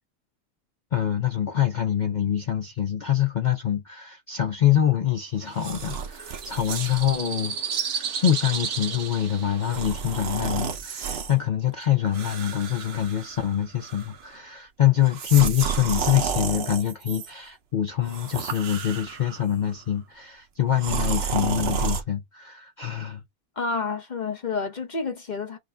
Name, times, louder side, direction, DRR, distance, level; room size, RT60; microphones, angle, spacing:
voice 1, 0.9-7.6 8.2-23.2, left 10 dB, 75° left, 0.4 m, -25 dB
sound 1, 5.5-10.7, right 7 dB, 80° right, 1.4 m, -33 dB
sound 2, 5.6-7.1 7.8-8.0 9.6-11.3 12.1-13.6 13.8-14.3 15.1-17.3 18.0-19.4 20.8-22.0, right 6 dB, 55° right, 0.8 m, -31 dB
voice 2, 23.6-25.6, left 4 dB, 40° left, 0.7 m, -29 dB
6.3 x 2.5 x 3.3 m
omnidirectional pair, 1.6 m